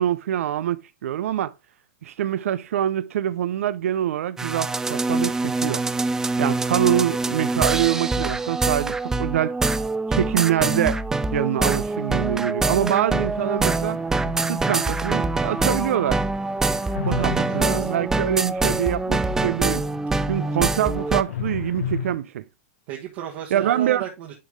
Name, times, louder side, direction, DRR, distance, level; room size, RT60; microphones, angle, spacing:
voice 1, 0.0-1.5 2.0-5.8 6.4-9.6 10.1-11.0 11.3-14.0 14.5-16.2 17.1-19.9 20.3-22.4 23.5-24.0, right 11 dB, 80° right, 0.4 m, -25 dB
sound 1, 4.4-21.2, right 3 dB, 5° right, 0.3 m, -24 dB
sound 2, 13.4-22.2, left 6 dB, 85° left, 0.8 m, -36 dB
voice 2, 17.0-17.9 22.9-24.3, right 12 dB, 50° right, 1.3 m, -34 dB
10.0 x 3.5 x 3.4 m
hypercardioid pair, 140°, 7 cm